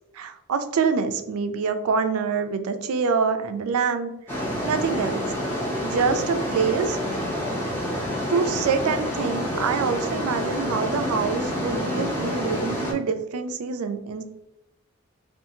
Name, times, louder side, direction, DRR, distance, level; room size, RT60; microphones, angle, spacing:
voice 1, 0.1-4.4 4.6-5.2 5.8-7.0 8.3-14.2, right 5 dB, 80° right, 8 dB, 0.4 m, -25 dB
sound 1, 4.3-12.9, equal, 10° left, 0.5 m, -28 dB
2.7 x 2.4 x 2.6 m, 0.87 s
head